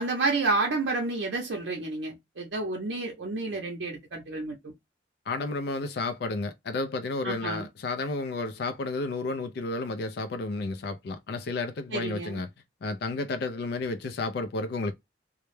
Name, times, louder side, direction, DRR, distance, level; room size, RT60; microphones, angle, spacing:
voice 1, 0.0-4.7 7.2-7.7 11.9-12.4, right 3 dB, 75° right, 0.6 m, -30 dB
voice 2, 5.3-12.5 12.8-14.9, left 3 dB, 60° left, 0.3 m, -32 dB
2.2 x 2.0 x 3.0 m
head